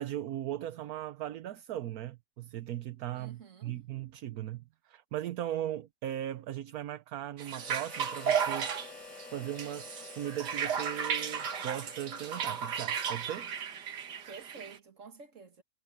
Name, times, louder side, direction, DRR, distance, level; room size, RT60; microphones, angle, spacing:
voice 1, 0.0-8.7 9.3-13.5, right 12 dB, 70° right, 1.2 m, -38 dB
voice 2, 3.1-3.8 14.3-15.6, right 5 dB, 50° right, 2.2 m, -50 dB
sound 1, 7.4-14.8, right 7 dB, 90° right, 2.0 m, -34 dB
Harmonica, 7.6-13.6, left 5 dB, 45° left, 3.0 m, -50 dB
omnidirectional pair, 1.8 m